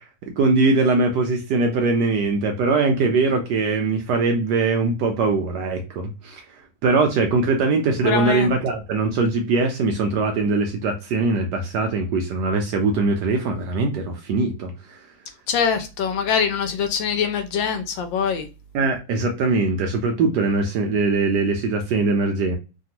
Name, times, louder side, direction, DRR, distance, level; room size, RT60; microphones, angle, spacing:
voice 1, 0.4-6.4 6.8-15.0 18.7-22.6, right 3 dB, 70° right, 1.1 m, -21 dB
voice 2, 8.0-8.5 15.5-18.4, left 7 dB, 75° left, 1.3 m, -23 dB
3.4 x 2.2 x 2.8 m
omnidirectional pair, 2.2 m